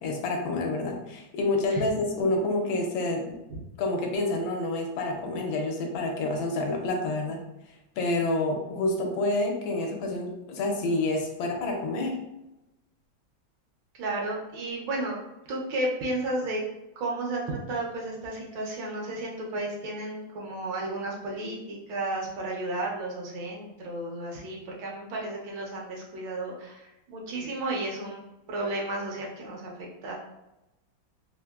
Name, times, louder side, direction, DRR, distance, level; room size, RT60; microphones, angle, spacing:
voice 1, 0.0-3.3 3.8-7.4 8.0-12.2, left 2 dB, 85° left, 2 dB, 1.4 m, -28 dB
voice 2, 14.0-15.2 15.5-16.6 17.0-28.2 28.5-29.7 30.0-30.2, right 2 dB, 75° right, -1 dB, 1.3 m, -33 dB
3.6 x 2.6 x 2.2 m, 0.95 s
omnidirectional pair, 2.2 m